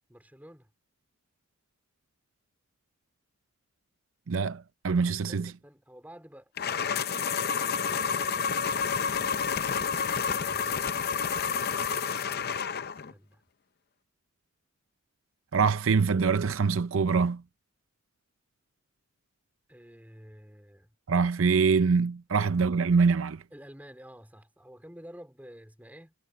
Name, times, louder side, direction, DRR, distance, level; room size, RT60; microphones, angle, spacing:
voice 1, 0.1-0.7 5.0-6.5 7.3-9.1 10.2-11.3 13.0-13.4 19.7-20.9 23.5-26.1, equal, 5° right, 3.7 m, -51 dB
voice 2, 4.3-5.5 15.5-17.4 21.1-23.4, right 5 dB, 65° right, 0.6 m, -24 dB
sound 1, 6.6-13.1, left 6 dB, 45° left, 0.6 m, -29 dB
head